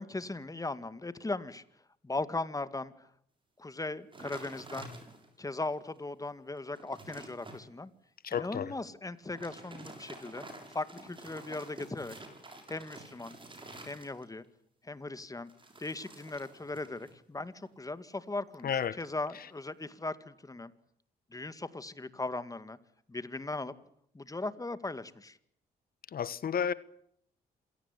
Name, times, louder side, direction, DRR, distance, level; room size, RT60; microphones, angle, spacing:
voice 1, 0.0-1.6 2.0-3.1 3.6-4.9 5.4-7.9 8.3-12.2 12.7-13.4 13.8-14.4 14.8-15.5 15.8-20.7 21.3-22.8 23.1-23.7 24.1-25.4, left 2 dB, 20° left, 2.1 m, -38 dB
sound 1, 4.1-5.4 6.0-6.1 6.5-7.6 9.2-14.5 15.5-17.2 17.4-17.8, right 2 dB, 30° right, 7.4 m, -49 dB
voice 2, 8.2-8.7 18.6-19.0 26.1-26.7, left 7 dB, 60° left, 1.2 m, -31 dB
27.0 x 17.5 x 10.0 m
cardioid pair, 80°, 17 cm